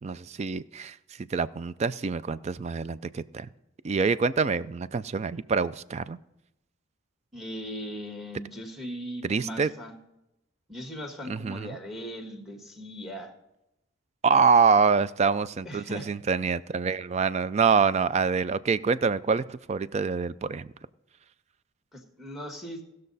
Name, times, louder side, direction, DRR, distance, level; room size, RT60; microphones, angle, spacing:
voice 1, 0.0-1.0 1.3-3.5 3.8-6.2 9.2-9.7 11.3-11.8 14.2-20.7, right 5 dB, 35° right, 16 dB, 0.3 m, -25 dB
voice 2, 7.3-9.9 10.7-13.3 15.6-16.1 21.9-22.8, equal, ahead, 3 dB, 1.5 m, -38 dB
18.0 x 6.5 x 4.0 m, 0.89 s
head